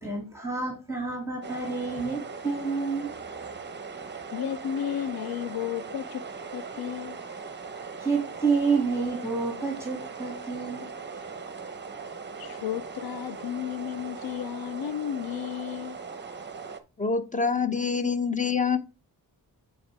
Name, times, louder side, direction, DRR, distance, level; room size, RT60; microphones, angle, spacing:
voice 1, 0.0-3.1 4.0-4.1 8.0-10.9, right 4 dB, 5° right, 2.3 m, -29 dB
sound 1, 1.4-16.8, right 5 dB, 30° right, 0.8 m, -39 dB
voice 2, 4.3-7.2 12.4-16.0, left 10 dB, 70° left, 0.5 m, -33 dB
voice 3, 17.0-18.8, left 5 dB, 20° left, 0.8 m, -26 dB
10.0 x 4.8 x 3.3 m
wide cardioid pair, 125°, 37 cm